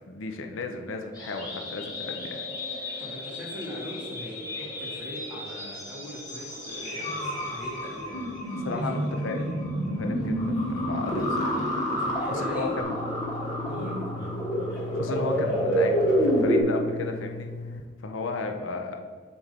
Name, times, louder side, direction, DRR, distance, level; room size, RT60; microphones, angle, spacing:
voice 1, 0.0-2.5 2.8-3.0 8.6-9.4 10.0-11.6 12.3-13.0 14.7-19.0, left 3 dB, 90° left, 4 dB, 0.6 m, -34 dB
sound 1, 1.2-16.6, equal, 20° left, 1.2 m, -29 dB
voice 2, 3.0-9.0 9.3-9.6 12.0-12.8 13.6-14.1, equal, 5° right, -6 dB, 1.4 m, -40 dB
sound 2, 12.8-17.8, left 3 dB, 40° left, 0.4 m, -38 dB
7.2 x 2.6 x 5.2 m, 1.5 s
head